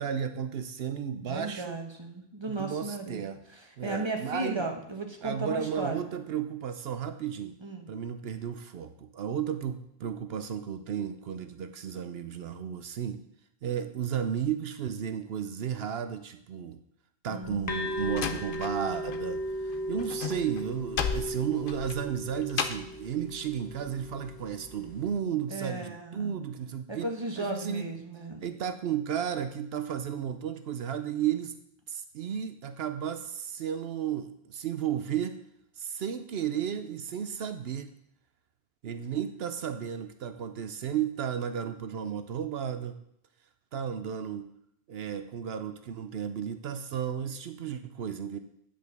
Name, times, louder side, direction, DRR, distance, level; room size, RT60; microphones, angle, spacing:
voice 1, 0.0-1.8 2.5-3.4 3.8-4.6 5.2-7.6 7.9-13.2 13.6-16.8 17.2-27.1 27.4-28.0 28.4-31.5 31.9-35.4 35.8-37.9 38.8-43.0 43.7-44.5 44.9-48.4, right 8 dB, 75° right, 9 dB, 0.9 m, -33 dB
voice 2, 1.2-3.2 3.5-6.1 7.6-7.9 17.3-18.3 25.5-26.3 26.9-28.4, right 2 dB, 25° right, 3 dB, 1.3 m, -36 dB
Slam, 17.4-19.2 19.5-23.0, left 7 dB, 60° left, 0.8 m, -35 dB
sound 1, 17.7-25.2, equal, 20° left, 0.9 m, -37 dB
9.4 x 5.2 x 6.6 m, 0.74 s
omnidirectional pair, 1.0 m